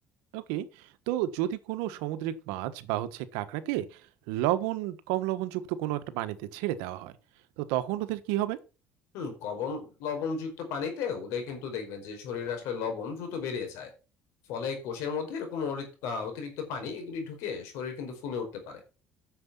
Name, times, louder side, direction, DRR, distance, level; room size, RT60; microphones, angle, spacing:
voice 1, 0.3-0.7 1.1-3.9 4.3-7.1 7.6-8.6, right 14 dB, 90° right, 1.3 m, -31 dB
voice 2, 9.1-13.9 14.5-18.8, left 6 dB, 80° left, 5.0 m, -34 dB
9.5 x 7.0 x 7.2 m
cardioid pair, 100°, 5 cm